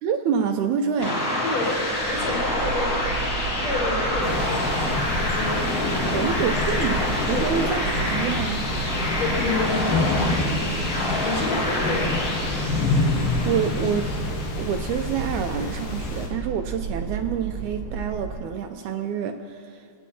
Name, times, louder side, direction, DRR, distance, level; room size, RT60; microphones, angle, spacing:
voice 1, 0.0-1.4 6.1-8.6 13.4-14.1 14.6-20.0, right 7 dB, 80° right, 6 dB, 1.8 m, -27 dB
sound 1, 1.0-14.7, left 1 dB, 35° left, 1.6 m, -27 dB
voice 2, 1.4-3.3 3.6-4.6 5.3-7.5 9.2-10.1 11.2-12.4, left 2 dB, 60° left, -2 dB, 2.7 m, -30 dB
sound 2, 1.7-18.6, right 4 dB, 50° right, 1.3 m, -34 dB
sound 3, 4.2-16.3, left 3 dB, 80° left, 2.8 m, -28 dB
27.0 x 9.0 x 2.8 m, 2.4 s
omnidirectional pair, 3.8 m